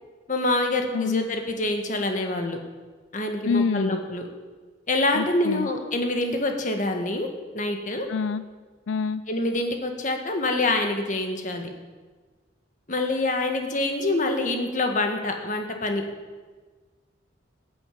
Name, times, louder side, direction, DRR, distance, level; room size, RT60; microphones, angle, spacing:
voice 1, 0.3-2.6 3.1-4.3 4.9-7.3 7.5-8.1 9.3-11.7 12.9-16.0, left 2 dB, 40° left, 4 dB, 1.8 m, -26 dB
voice 2, 0.9-1.2 3.4-4.0 5.1-5.7 8.1-8.4 8.9-9.2, left 5 dB, 90° left, 14 dB, 0.5 m, -26 dB
15.0 x 8.6 x 8.5 m, 1.4 s
head